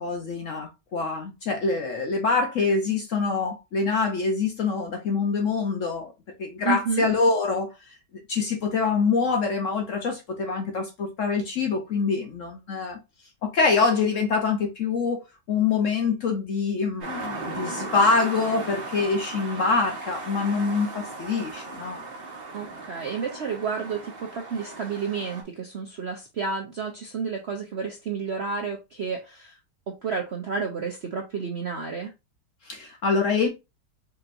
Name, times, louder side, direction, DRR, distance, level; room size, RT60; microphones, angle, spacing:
voice 1, 0.0-6.1 6.4-7.7 8.3-13.0 13.4-15.2 15.5-22.1 32.6-33.5, left 4 dB, 60° left, 0.9 m, -25 dB
voice 2, 6.6-7.1 22.5-29.5 29.9-32.1, right 5 dB, 60° right, 0.6 m, -31 dB
sound 1, 17.0-25.4, right 3 dB, 40° right, 1.0 m, -37 dB
5.2 x 3.0 x 2.5 m
omnidirectional pair, 1.9 m